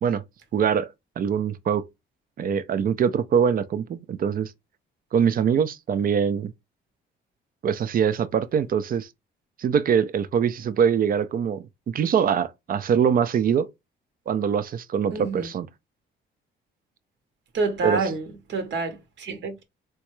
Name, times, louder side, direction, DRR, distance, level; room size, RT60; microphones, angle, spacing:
voice 1, 0.5-0.9 1.2-1.8 2.4-4.5 5.1-6.5 7.6-9.1 9.6-13.7 14.3-15.7 17.8-18.0, right 7 dB, 45° right, 0.5 m, -23 dB
voice 2, 15.1-15.5 17.5-19.6, right 3 dB, 70° right, 0.9 m, -28 dB
3.6 x 2.2 x 3.0 m
cardioid pair, 90°, 20 cm